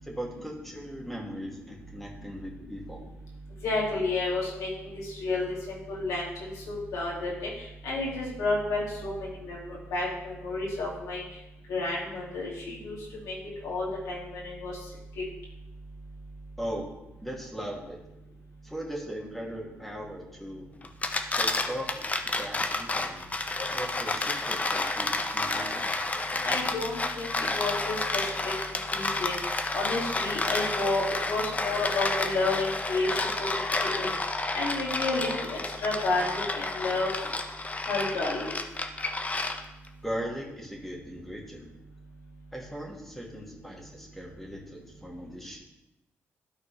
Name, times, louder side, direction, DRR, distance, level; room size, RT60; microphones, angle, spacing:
voice 1, 0.0-3.0 16.6-16.9 17.2-18.0 18.6-20.6 21.3-23.2 23.6-26.5 40.0-41.7 42.5-45.6, equal, 5° left, -2 dB, 2.0 m, -39 dB
voice 2, 3.6-7.5 7.8-11.2 11.7-13.0 13.2-13.4 13.6-14.7 26.4-28.3 28.7-29.3 29.7-33.5 33.8-34.1 34.5-37.1 37.9-38.5, left 2 dB, 85° left, -4 dB, 2.4 m, -31 dB
sound 1, 20.8-39.9, left 2 dB, 30° left, 0.8 m, -30 dB
12.5 x 4.3 x 3.3 m, 0.95 s
supercardioid pair, 65°, 5 cm